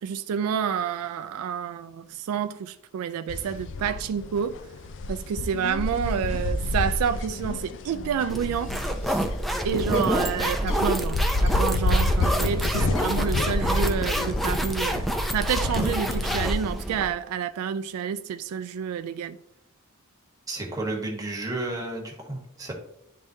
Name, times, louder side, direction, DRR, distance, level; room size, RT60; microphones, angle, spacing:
voice 1, 0.0-4.6 5.1-8.7 9.0-9.3 9.6-19.4, right 7 dB, 90° right, 0.3 m, -29 dB
sound 1, 3.3-16.5, left 2 dB, 60° left, 0.4 m, -29 dB
sound 2, 8.3-17.1, equal, ahead, 0.4 m, -27 dB
voice 2, 12.7-13.1 20.5-22.7, right 2 dB, 15° right, 1.2 m, -32 dB
10.0 x 3.5 x 2.7 m
head